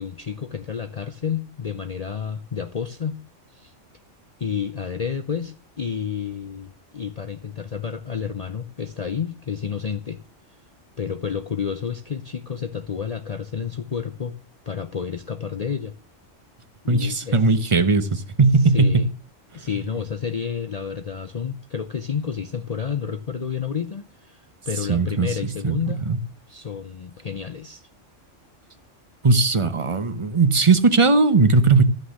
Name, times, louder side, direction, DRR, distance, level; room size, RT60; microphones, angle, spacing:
voice 1, 0.0-3.2 3.5-3.7 4.4-10.2 11.0-14.4 14.7-15.9 16.8-17.4 18.6-19.1 19.5-26.1 26.5-27.8, left 7 dB, 40° left, 0.6 m, -30 dB
voice 2, 16.9-19.0 24.9-25.3 25.6-25.8 26.1-26.2 29.2-31.8, right 3 dB, 30° right, 0.8 m, -18 dB
13.0 x 6.5 x 6.4 m
omnidirectional pair, 1.3 m